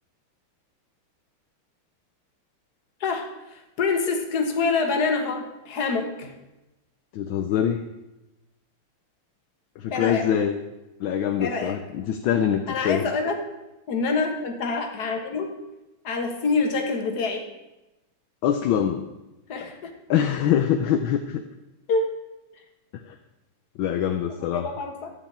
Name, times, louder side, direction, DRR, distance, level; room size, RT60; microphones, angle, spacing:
voice 1, 3.0-6.4 9.9-10.3 11.4-11.8 12.7-13.4 13.9-15.5 16.0-17.4 19.5-19.9 21.9-22.1 24.3-25.1, left 4 dB, 50° left, 3 dB, 1.8 m, -26 dB
voice 2, 7.1-7.9 9.8-10.6 11.0-13.0 18.4-19.0 19.6-19.7 20.1-21.4 22.9-23.1 23.8-24.7, left 9 dB, 70° left, 6 dB, 1.4 m, -24 dB
13.0 x 5.1 x 8.4 m, 1.0 s
omnidirectional pair, 2.4 m